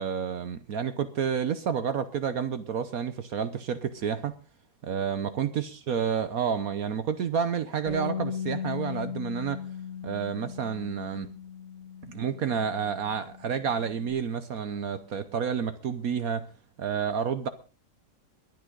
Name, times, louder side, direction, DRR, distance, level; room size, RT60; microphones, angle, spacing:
voice 1, 0.0-4.3 4.8-9.6 10.0-11.3 12.1-16.5 16.8-17.5, right 7 dB, 60° right, 12 dB, 1.2 m, -30 dB
Bass guitar, 7.9-14.1, left 7 dB, 40° left, 5.5 m, -38 dB
22.5 x 9.3 x 3.8 m, 0.34 s
omnidirectional pair, 1.9 m